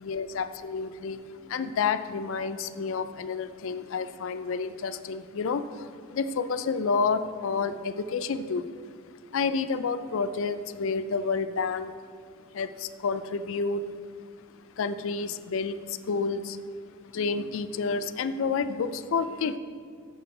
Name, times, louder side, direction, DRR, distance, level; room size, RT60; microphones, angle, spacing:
voice 1, 0.0-8.7 9.3-11.9 12.5-13.8 14.8-16.6 17.1-19.6, left 5 dB, 60° left, 11 dB, 0.4 m, -29 dB
6.9 x 6.5 x 4.7 m, 2.3 s
head